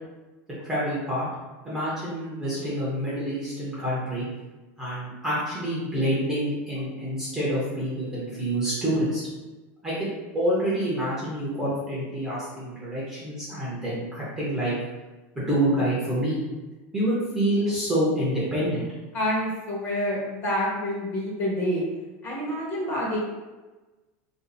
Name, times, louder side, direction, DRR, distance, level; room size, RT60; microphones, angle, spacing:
voice 1, 0.6-1.3 1.6-4.3 4.8-9.2 9.8-10.1 10.3-14.7 15.5-16.4 16.9-18.9, right 1 dB, 5° right, -9 dB, 0.7 m, -27 dB
voice 2, 19.1-21.8 22.2-23.2, equal, 30° left, -5 dB, 1.0 m, -27 dB
2.7 x 2.5 x 3.9 m, 1.2 s
supercardioid pair, 175°, 8 cm